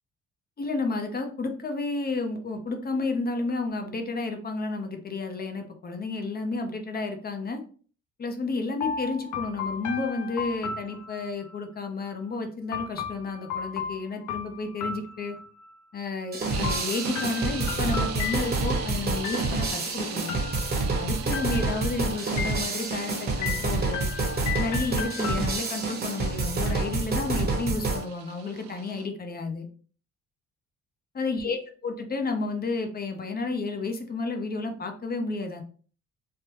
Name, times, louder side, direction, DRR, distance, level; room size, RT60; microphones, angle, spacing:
voice 1, 0.6-7.6 8.2-15.4 15.9-20.4 21.0-24.1 24.6-29.7 31.1-35.6, left 3 dB, 30° left, 5 dB, 0.6 m, -31 dB
sound 1, 8.8-11.6 12.7-15.7 16.6-18.8 19.2-19.9 20.3-21.0 21.3-22.0 22.4-23.0 23.4-25.9, left 6 dB, 70° left, 0.5 m, -35 dB
sound 2, 16.3-28.0, right 3 dB, 30° right, 1.0 m, -28 dB
sound 3, 16.5-29.1, right 9 dB, 60° right, 0.5 m, -41 dB
3.3 x 2.1 x 2.9 m, 0.42 s
cardioid pair, 90°, 30 cm